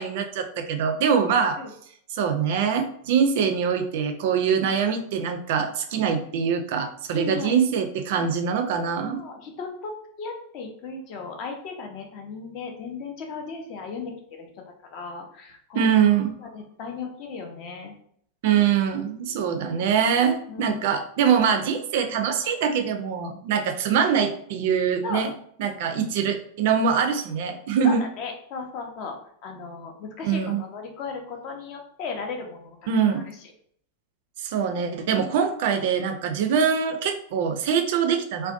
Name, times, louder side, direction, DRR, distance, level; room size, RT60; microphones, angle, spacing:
voice 1, 0.0-1.6 2.1-9.2 15.7-16.4 18.4-25.3 25.6-28.0 30.2-30.6 32.9-33.2 34.4-38.5, right 7 dB, 50° right, 6 dB, 0.3 m, -23 dB
voice 2, 7.1-7.6 8.5-8.6 9.1-9.9 10.2-14.5 14.9-15.9 16.5-17.9 20.5-20.8 25.0-25.3 26.2-26.3 27.8-29.2 29.4-32.8 33.1-33.2, left 4 dB, 40° left, 3 dB, 0.5 m, -35 dB
2.4 x 2.1 x 2.5 m, 0.65 s
figure-of-eight pair, 90°, 0 cm